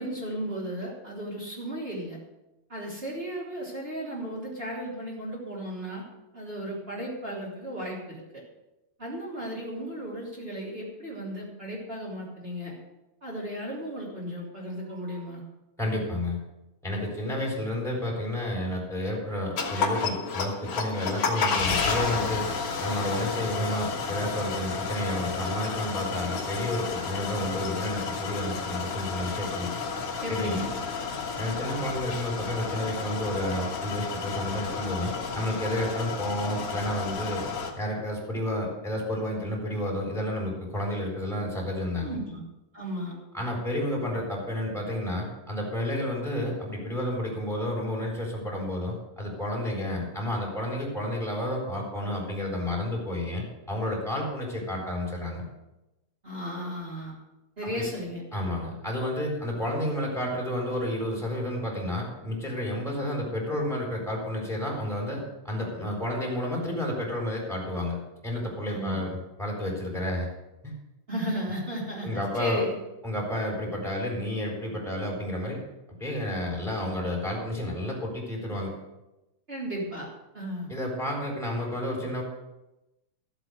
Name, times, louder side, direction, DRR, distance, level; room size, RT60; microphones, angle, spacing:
voice 1, 0.0-2.2 2.7-6.0 6.3-8.4 9.0-12.7 13.2-15.4 30.2-30.7 42.0-42.4 42.7-43.2 56.2-57.2 57.6-58.2 68.7-69.1 71.1-72.8 79.5-80.1 80.3-80.7, equal, 20° right, -4 dB, 3.0 m, -34 dB
voice 2, 15.8-16.4 16.8-22.5 22.8-29.7 30.3-30.6 31.4-37.5 37.8-42.2 43.3-55.4 57.6-57.7 58.3-68.0 68.2-70.3 70.6-70.7 72.0-72.6 73.0-75.6 76.0-78.7 80.7-82.2, left 1 dB, ahead, -3 dB, 3.6 m, -31 dB
sound 1, 19.6-37.7, left 5 dB, 50° left, 2.1 m, -31 dB
14.0 x 7.8 x 6.4 m, 0.97 s
omnidirectional pair, 3.9 m